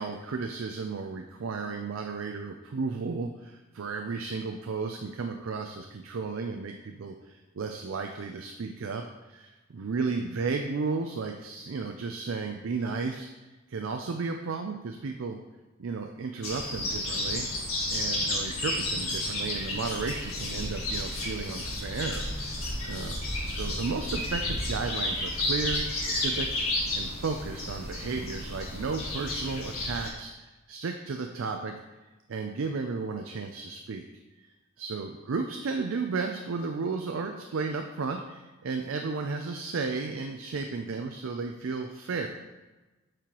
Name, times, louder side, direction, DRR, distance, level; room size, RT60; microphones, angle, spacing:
voice 1, 0.0-15.4 15.8-17.5 17.9-31.7 32.3-34.0 34.4-42.3, right 4 dB, 70° right, 4 dB, 0.5 m, -34 dB
sound 1, 16.4-30.1, left 1 dB, 85° left, 1.7 m, -32 dB
8.9 x 4.7 x 3.0 m, 1.2 s
head